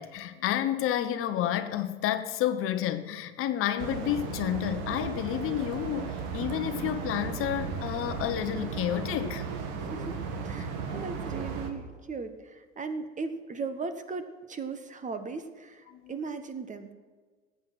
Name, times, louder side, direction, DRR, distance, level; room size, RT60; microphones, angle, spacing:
voice 1, 0.0-9.4 15.9-16.1, left 11 dB, 45° left, 10 dB, 1.1 m, -30 dB
sound 1, 3.8-11.7, right 5 dB, 55° right, 2.0 m, -35 dB
voice 2, 9.8-16.9, right 4 dB, 25° right, 10 dB, 1.4 m, -38 dB
20.0 x 8.4 x 6.2 m, 1.5 s
hypercardioid pair, 75°, 31 cm